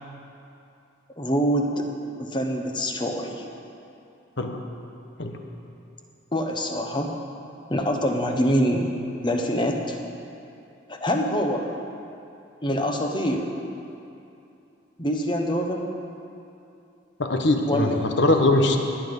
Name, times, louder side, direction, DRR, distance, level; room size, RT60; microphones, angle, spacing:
voice 1, 1.2-1.9 2.2-3.4 6.3-7.1 7.7-8.9 9.2-10.0 10.9-11.7 12.6-13.5 15.0-15.9 17.7-18.1, equal, 25° left, 3 dB, 1.1 m, -25 dB
voice 2, 17.2-18.8, left 2 dB, 60° left, 4 dB, 1.2 m, -21 dB
19.0 x 9.3 x 5.4 m, 2.7 s
head